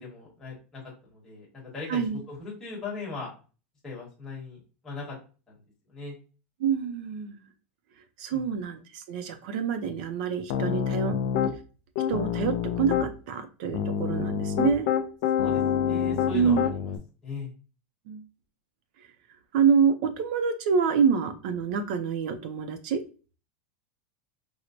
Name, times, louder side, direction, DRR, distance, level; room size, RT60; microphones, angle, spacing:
voice 1, 0.0-3.3 3.8-4.6 4.8-5.1 5.9-6.2 8.3-8.5 15.3-16.9 17.2-17.5, left 4 dB, 5° left, -6 dB, 1.1 m, -39 dB
voice 2, 6.6-7.4 8.2-11.2 12.1-14.9 16.3-16.6 18.1-18.2 19.5-23.0, right 6 dB, 45° right, 9 dB, 0.4 m, -26 dB
Piano, 10.5-11.5 12.0-13.1 13.7-17.0, left 8 dB, 40° left, 0.3 m, -27 dB
4.3 x 2.0 x 2.6 m, 0.35 s
supercardioid pair, 180°, 7 cm